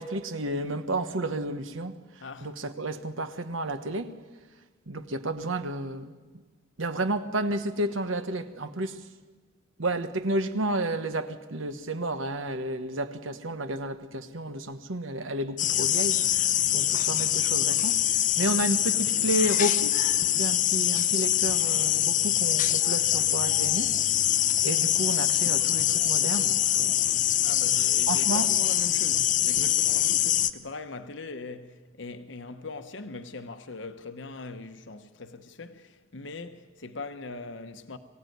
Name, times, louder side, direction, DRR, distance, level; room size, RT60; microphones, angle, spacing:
voice 1, 0.0-1.9 2.4-4.2 4.9-6.1 6.8-9.0 9.8-20.0 20.4-24.0 24.6-27.1 28.1-28.5 29.6-29.7, right 1 dB, 80° right, 1.2 m, -31 dB
voice 2, 2.2-2.5 18.4-18.6 27.4-38.0, left 3 dB, 65° left, 1.1 m, -41 dB
sound 1, 15.6-30.5, left 12 dB, 40° left, 0.7 m, -24 dB
23.5 x 16.0 x 9.3 m
head